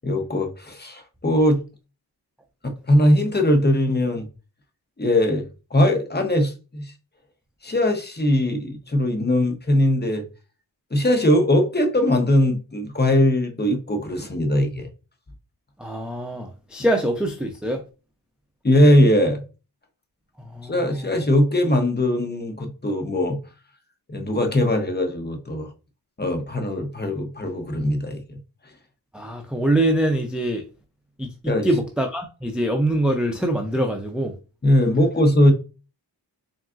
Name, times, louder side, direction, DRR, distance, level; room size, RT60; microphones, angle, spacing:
voice 1, 0.0-1.6 2.6-4.3 5.0-5.5 5.7-6.9 7.6-10.2 10.9-14.9 18.6-19.4 20.6-23.4 24.1-25.7 26.2-28.4 31.5-31.7 34.6-35.5, left 1 dB, 25° left, 0.8 m, -20 dB
voice 2, 15.8-17.8 20.5-20.7 29.1-30.6 31.2-31.3 31.6-34.3, right 1 dB, ahead, 0.5 m, -23 dB
3.9 x 3.6 x 2.5 m
wide cardioid pair, 80°, 42 cm